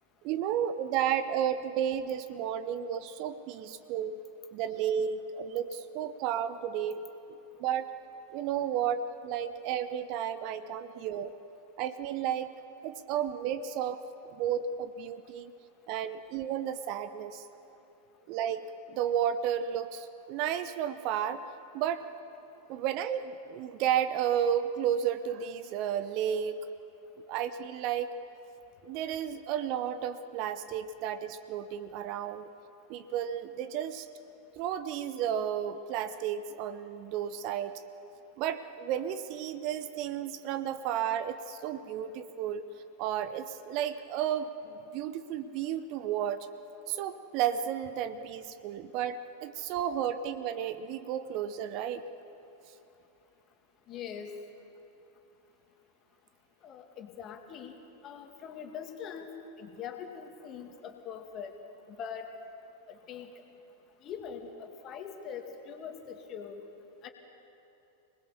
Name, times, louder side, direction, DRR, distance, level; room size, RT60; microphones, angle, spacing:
voice 1, 0.2-4.2 4.5-7.0 7.6-7.9 8.3-11.3 11.8-12.5 12.8-14.0 14.4-15.5 15.9-17.4 18.3-21.4 21.7-22.0 22.7-26.7 27.3-28.1 28.8-32.5 32.9-34.1 34.6-37.7 38.4-42.7 43.0-46.5 46.9-52.0, right 9 dB, 40° right, 12 dB, 0.8 m, -32 dB
voice 2, 53.9-54.3 56.6-57.8 58.0-61.6 61.9-62.3 62.9-63.3 64.0-66.6 67.0-67.1, left 7 dB, 35° left, 5 dB, 2.3 m, -42 dB
26.5 x 20.0 x 7.0 m, 2.9 s
figure-of-eight pair, 90°, 0 cm